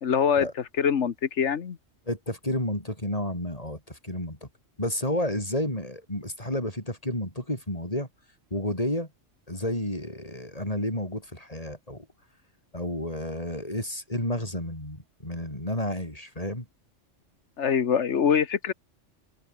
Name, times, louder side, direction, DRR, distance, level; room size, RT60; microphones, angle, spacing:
voice 1, 0.0-0.5 0.8-1.8 17.6-18.7, left 7 dB, 65° left, 1.4 m, -24 dB
voice 2, 2.1-4.5 4.8-8.1 8.5-9.1 9.5-12.1 12.7-16.7, left 1 dB, 30° left, 7.6 m, -31 dB
omnidirectional pair, 1.3 m